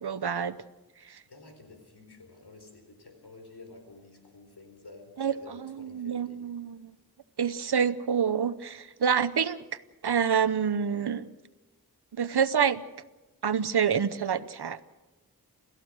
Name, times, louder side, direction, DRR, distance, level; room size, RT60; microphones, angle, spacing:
voice 1, 0.0-0.6 5.2-5.3 5.6-6.9 7.4-9.6 10.0-11.3 12.2-12.8 13.4-14.8, right 7 dB, 80° right, 15 dB, 0.9 m, -27 dB
voice 2, 1.3-6.5, left 3 dB, 80° left, 5 dB, 4.2 m, -50 dB
29.0 x 14.5 x 6.4 m, 1.1 s
wide cardioid pair, 50°, 39 cm